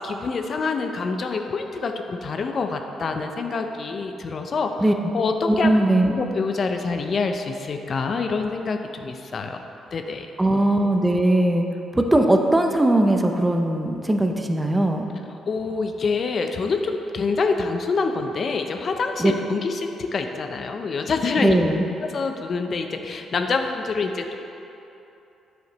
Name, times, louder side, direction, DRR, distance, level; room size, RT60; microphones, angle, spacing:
voice 1, 0.0-4.8 5.1-5.8 6.1-9.6 9.9-10.3 15.5-21.5 22.1-24.4, left 4 dB, 50° left, 5 dB, 0.5 m, -26 dB
voice 2, 5.5-6.1 10.4-11.6 11.9-15.1 19.2-19.3 21.4-21.8, right 1 dB, 15° right, 4 dB, 0.5 m, -19 dB
7.8 x 4.9 x 4.0 m, 2.9 s
cardioid pair, 90°, 0 cm